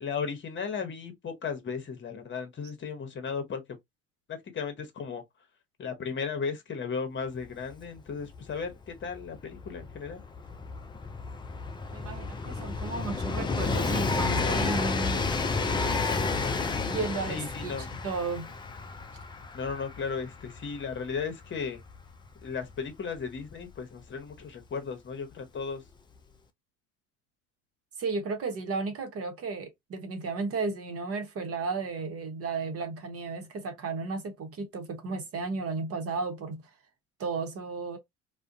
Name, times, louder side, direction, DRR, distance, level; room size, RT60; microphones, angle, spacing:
voice 1, 0.0-3.6 4.3-5.2 5.8-10.2 17.3-17.9 19.5-21.8 22.4-25.8, left 5 dB, 30° left, 1.0 m, -35 dB
Train, 7.4-7.5 7.7-24.3 25.3-25.4, left 4 dB, 15° left, 0.4 m, -32 dB
voice 2, 11.9-15.2 16.9-18.5 28.0-36.7 37.2-38.0, right 4 dB, 40° right, 1.0 m, -34 dB
2.4 x 2.2 x 2.6 m
hypercardioid pair, 65°, 36 cm